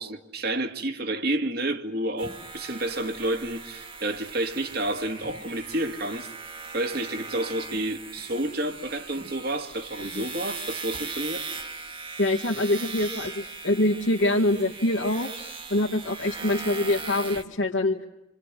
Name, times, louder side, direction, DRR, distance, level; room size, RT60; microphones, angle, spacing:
voice 1, 0.0-6.3 6.7-11.5, right 1 dB, 55° right, 2.1 m, -30 dB
sound 1, 2.2-17.4, right 4 dB, 25° right, 1.6 m, -39 dB
voice 2, 12.2-15.3 15.7-18.0, left 1 dB, 75° left, 2.1 m, -25 dB
27.5 x 27.5 x 7.6 m
head